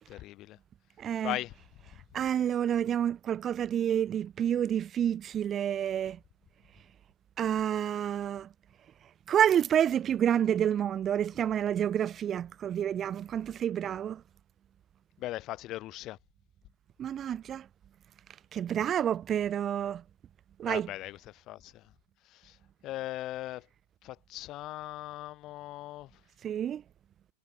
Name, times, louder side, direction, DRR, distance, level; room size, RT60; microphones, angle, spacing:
voice 1, 0.1-0.6 1.2-1.5 15.2-16.2 20.6-21.9 22.3-22.6 22.8-23.7 24.0-26.1, left 16 dB, 35° left, 3.9 m, -39 dB
voice 2, 1.0-1.4 2.1-6.2 7.4-8.5 9.3-14.2 17.0-17.7 18.5-20.0 20.6-20.9 26.4-26.8, right 9 dB, 25° right, 1.1 m, -29 dB
figure-of-eight pair, 90°, 0 cm